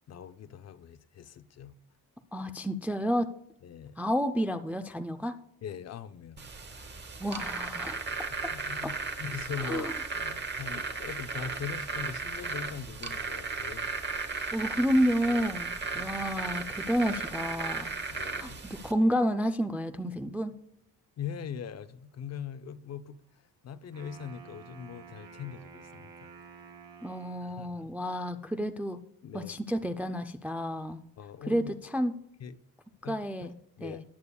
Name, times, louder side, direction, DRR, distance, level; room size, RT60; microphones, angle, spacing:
voice 1, 0.0-1.8 3.6-4.0 5.6-6.5 8.1-8.2 8.5-13.9 15.9-16.1 18.1-18.6 21.2-26.3 27.4-27.9 29.2-29.5 31.2-31.7 32.4-32.6 33.0-33.2 33.4-33.5 33.8-34.0, left 8 dB, 45° left, 0.5 m, -41 dB
voice 2, 2.3-3.3 4.0-5.3 7.2-8.1 8.8-8.9 9.6-9.9 14.5-17.9 18.4-20.5 27.0-29.0 29.3-31.0 31.5-32.1 33.0-33.5 33.8-34.0, equal, 5° right, 0.3 m, -30 dB
sound 1, 6.4-18.9, right 4 dB, 30° right, 1.0 m, -35 dB
Wind instrument woodwind instrument, 23.8-27.8, right 6 dB, 75° right, 2.4 m, -50 dB
18.0 x 8.3 x 2.3 m
cardioid pair, 150°, 36 cm